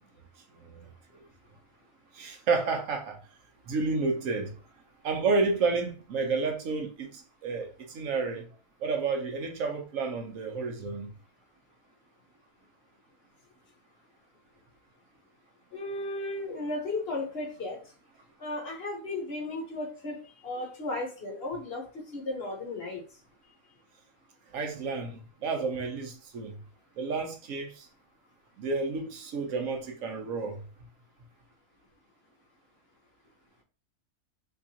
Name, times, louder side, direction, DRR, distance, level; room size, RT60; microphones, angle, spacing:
voice 1, 2.1-3.2 3.7-4.5 5.0-8.5 8.8-11.1 24.5-26.6 27.0-27.9 28.6-30.6, right 4 dB, 80° right, 1.1 m, -30 dB
voice 2, 15.7-17.8 18.4-20.1 20.4-23.0, left 2 dB, 50° left, 1.2 m, -35 dB
3.5 x 3.0 x 2.8 m
omnidirectional pair, 1.4 m